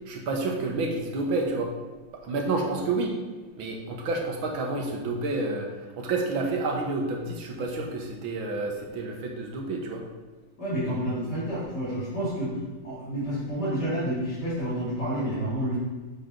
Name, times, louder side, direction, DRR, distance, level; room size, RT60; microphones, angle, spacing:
voice 1, 0.1-1.7 2.2-3.2 3.6-5.7 6.0-10.0, right 3 dB, 80° right, 1 dB, 1.9 m, -29 dB
voice 2, 10.6-12.5 12.8-15.8, equal, 55° left, -12 dB, 3.2 m, -29 dB
7.8 x 5.5 x 3.8 m, 1.3 s
omnidirectional pair, 2.2 m